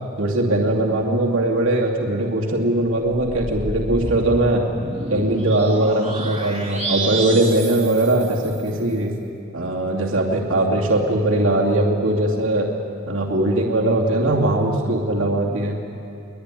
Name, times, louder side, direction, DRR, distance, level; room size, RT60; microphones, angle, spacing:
voice 1, 0.2-4.6 5.1-9.1 9.5-12.7 13.1-15.8, right 1 dB, 70° right, -1 dB, 2.7 m, -20 dB
sound 1, 3.0-8.8, right 2 dB, 30° right, 2.7 m, -31 dB
23.5 x 20.5 x 9.9 m, 2.7 s
head